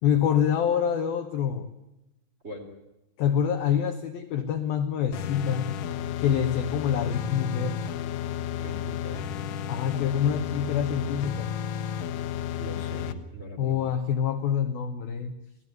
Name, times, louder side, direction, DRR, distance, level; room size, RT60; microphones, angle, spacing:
voice 1, 0.0-1.7 3.2-5.7 6.2-7.8 9.7-11.5 13.6-15.3, left 8 dB, 70° left, 7 dB, 2.3 m, -26 dB
sound 1, 5.1-13.1, left 9 dB, 85° left, 3.8 m, -32 dB
voice 2, 8.6-9.2 12.6-13.8, equal, 15° right, 1 dB, 3.2 m, -40 dB
27.5 x 17.0 x 9.3 m, 0.93 s
omnidirectional pair, 5.7 m